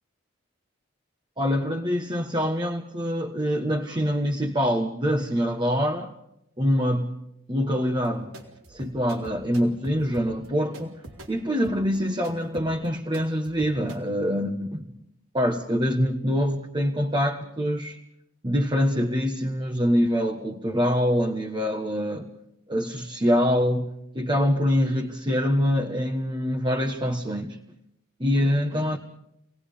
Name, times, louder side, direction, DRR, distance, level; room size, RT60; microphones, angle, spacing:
voice 1, 1.4-6.1 6.6-7.2 7.5-8.3 8.7-11.0 11.3-14.9 15.3-18.0 18.4-22.3 22.7-27.6 28.2-29.0, equal, 20° right, 0 dB, 1.4 m, -25 dB
sound 1, 7.9-14.0, right 1 dB, 90° right, 3.9 m, -44 dB
28.5 x 19.5 x 5.2 m, 0.78 s
head